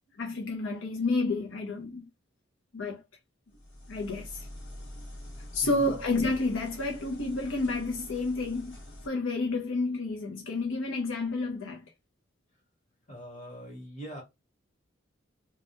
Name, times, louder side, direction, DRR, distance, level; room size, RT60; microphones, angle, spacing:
voice 1, 0.2-2.1 2.7-3.0 3.9-4.5 5.5-8.8 9.0-11.8, left 2 dB, 85° left, 0.6 m, -30 dB
sound 1, 3.5-9.1, left 1 dB, 60° left, 1.0 m, -45 dB
voice 2, 13.1-14.2, right 1 dB, 35° left, 1.1 m, -42 dB
2.2 x 2.2 x 2.9 m
head